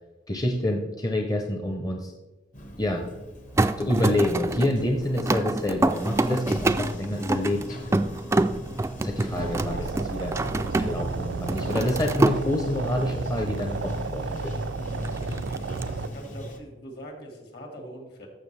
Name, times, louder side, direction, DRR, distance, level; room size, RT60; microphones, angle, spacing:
voice 1, 0.3-2.1 2.8-3.0 3.8-8.1 9.0-9.8 10.2-10.4 10.8-14.5, left 1 dB, 20° left, 3 dB, 0.7 m, -27 dB
Bathtub (filling or washing), 2.5-16.6, left 1 dB, 45° left, 1.0 m, -38 dB
sound 1, 3.6-11.1 11.4-12.4 15.0-15.8, right 2 dB, 15° right, 0.3 m, -26 dB
sound 2, 9.3-16.1, right 5 dB, 80° right, 0.4 m, -33 dB
voice 2, 15.6-18.3, equal, 60° left, 3 dB, 2.0 m, -42 dB
14.0 x 5.9 x 3.3 m, 1.1 s
head